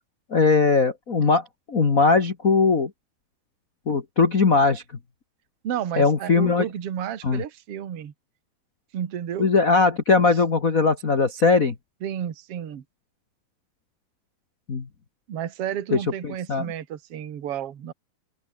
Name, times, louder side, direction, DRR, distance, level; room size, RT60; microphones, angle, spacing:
voice 1, 0.3-2.9 3.9-4.8 6.0-6.6 7.2-7.4 9.4-11.7 14.7-14.9 15.9-16.0 16.2-16.6, left 4 dB, 40° left, 1.2 m, -20 dB
voice 2, 5.6-8.1 8.9-9.5 12.0-12.8 15.3-17.9, right 10 dB, 45° right, 2.3 m, -31 dB
open air
omnidirectional pair, 4.4 m